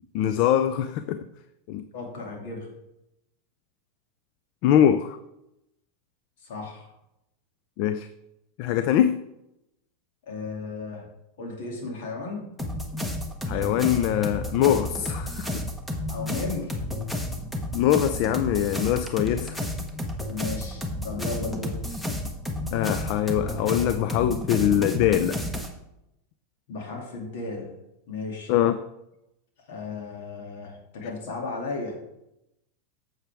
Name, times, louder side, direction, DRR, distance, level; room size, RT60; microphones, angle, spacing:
voice 1, 0.1-1.3 1.7-1.8 4.6-5.2 7.8-8.1 8.6-9.2 13.5-15.7 17.7-19.7 22.7-25.4 28.5-28.8 31.0-31.1, left 10 dB, 55° left, 12 dB, 0.4 m, -23 dB
voice 2, 1.9-2.7 6.4-6.9 10.2-11.1 11.4-12.5 16.1-16.7 20.3-21.8 26.7-27.7 28.1-28.5 29.7-32.0, left 3 dB, 75° left, 1 dB, 2.5 m, -35 dB
sound 1, 12.6-25.7, left 1 dB, 5° left, 1.2 m, -31 dB
8.9 x 7.2 x 3.5 m, 0.87 s
supercardioid pair, 125°, 0 cm